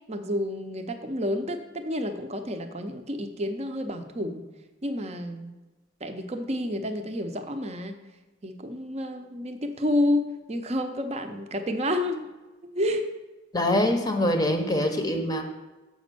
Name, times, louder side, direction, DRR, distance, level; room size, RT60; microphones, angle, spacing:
voice 1, 0.1-4.4 4.8-5.5 6.0-8.0 8.4-12.3 12.7-13.1, left 1 dB, 35° right, 7 dB, 0.7 m, -29 dB
voice 2, 13.5-15.4, left 1 dB, 20° left, 4 dB, 0.7 m, -24 dB
7.2 x 5.2 x 6.7 m, 1.1 s
head